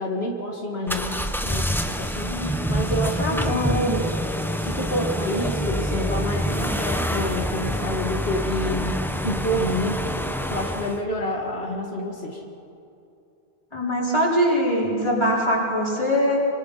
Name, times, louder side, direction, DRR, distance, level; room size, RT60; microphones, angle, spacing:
voice 1, 0.0-4.3 4.6-10.2 10.5-12.4, equal, 85° left, 0 dB, 2.2 m, -28 dB
sound 1, 0.9-11.0, equal, ahead, 1.0 m, -26 dB
voice 2, 3.2-3.9 13.7-16.4, equal, 25° left, -5 dB, 4.7 m, -23 dB
26.0 x 24.5 x 5.8 m, 2.7 s
omnidirectional pair, 1.0 m